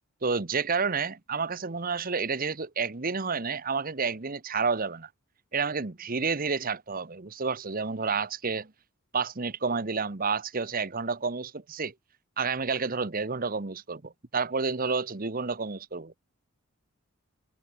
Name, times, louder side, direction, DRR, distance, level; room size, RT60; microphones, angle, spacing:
voice 1, 0.2-5.1 5.5-8.7 9.1-11.9 12.4-16.2, right 5 dB, 40° right, 1.1 m, -30 dB
head